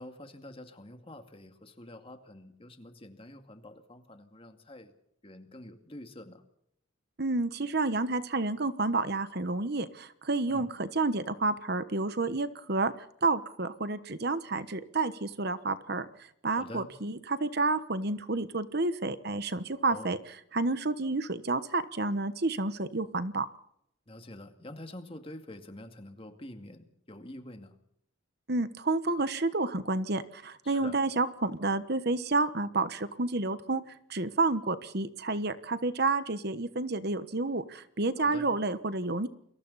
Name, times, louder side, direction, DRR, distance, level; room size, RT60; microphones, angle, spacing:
voice 1, 0.0-4.9 5.2-6.4 10.5-10.7 16.5-16.9 19.9-20.2 24.1-27.8 30.6-31.0 38.2-38.5, left 1 dB, 25° left, 6 dB, 2.3 m, -47 dB
voice 2, 7.2-12.9 13.2-16.1 16.4-20.2 20.5-23.4 28.5-33.8 34.1-39.3, right 3 dB, 50° right, 12 dB, 1.2 m, -30 dB
29.5 x 23.0 x 4.2 m, 0.73 s
head